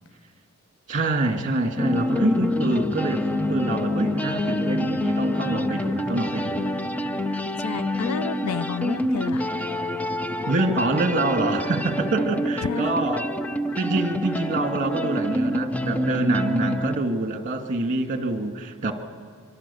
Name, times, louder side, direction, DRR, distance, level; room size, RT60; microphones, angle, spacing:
voice 1, 0.9-6.7 10.5-13.4 13.8-18.9, right 2 dB, 40° right, 2.2 m, -26 dB
sound 1, 1.8-17.0, left 1 dB, 5° left, 0.5 m, -26 dB
voice 2, 7.6-9.4 12.6-12.9, left 6 dB, 80° left, 0.5 m, -30 dB
25.5 x 24.0 x 7.1 m
head